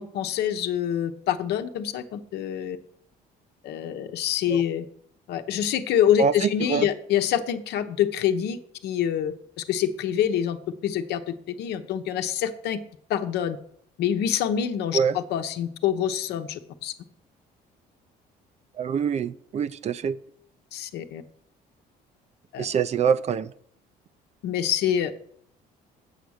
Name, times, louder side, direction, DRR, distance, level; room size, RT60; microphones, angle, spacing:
voice 1, 0.0-2.8 3.6-4.9 5.3-10.6 10.8-12.8 13.1-13.6 14.0-16.9 20.7-21.2 22.5-22.6 24.4-25.2, left 10 dB, 75° left, 8 dB, 1.0 m, -26 dB
voice 2, 6.2-6.9 14.9-15.2 18.8-20.2 22.6-23.5, right 6 dB, 40° right, 16 dB, 0.5 m, -24 dB
8.1 x 7.1 x 6.4 m, 0.67 s
cardioid pair, 110°, 17 cm